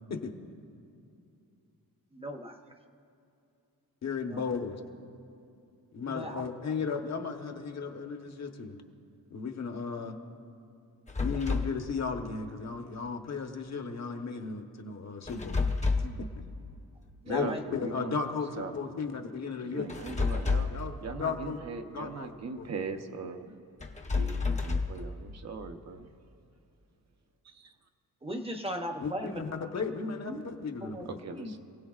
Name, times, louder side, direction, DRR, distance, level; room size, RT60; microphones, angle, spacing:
voice 1, 2.1-2.6 4.3-4.4 6.1-6.4 17.2-17.6 28.2-29.4 30.3-30.4 30.8-31.6, equal, 15° right, 4 dB, 0.8 m, -37 dB
voice 2, 4.0-4.8 5.9-8.8 9.3-10.2 11.2-15.7 16.0-16.3 17.3-19.9 20.7-21.6 21.9-22.3 22.6-22.7 29.0-31.2, left 5 dB, 45° left, 4 dB, 1.1 m, -35 dB
sound 1, 11.1-11.8 15.3-16.2 19.9-20.9 23.8-25.0, left 4 dB, 20° left, 0.8 m, -29 dB
voice 3, 17.4-18.2 18.6-18.9 19.6-20.7 21.0-23.6 24.1-26.1 27.4-27.7 31.0-31.6, right 4 dB, 45° right, 6 dB, 0.8 m, -40 dB
27.0 x 17.0 x 2.4 m, 2.6 s
wide cardioid pair, 165°, 36 cm